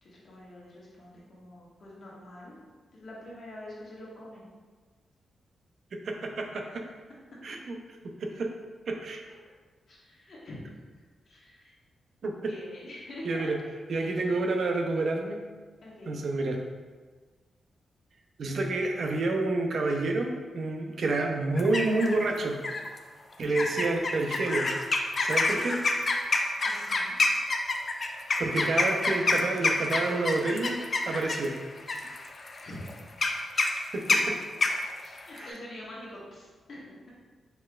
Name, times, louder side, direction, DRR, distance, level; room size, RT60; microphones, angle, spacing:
voice 1, 0.0-2.6 2.9-4.5 7.3-7.4 9.9-10.6 11.2-11.7 12.5-13.5 14.1-14.2 15.8-16.2 20.8-21.1 23.5-23.7 26.6-27.1 32.6-32.8 34.1-34.2 35.0-37.1, left 1 dB, 55° left, -6 dB, 1.4 m, -45 dB
voice 2, 6.0-6.8 7.4-7.8 8.2-8.5 8.9-9.2 12.2-12.3 13.3-13.6 13.9-15.4 16.1-16.6 18.4-22.6 23.4-24.7 25.2-25.8 28.4-30.8 31.1-31.5 33.9-34.0 35.4-35.5, right 2 dB, 60° right, 2 dB, 0.5 m, -28 dB
sound 1, 21.6-22.2 22.6-23.0 23.5-35.5, left 3 dB, 40° left, 0.4 m, -28 dB
4.4 x 4.3 x 2.3 m, 1.4 s
cardioid pair, 105°, 0 cm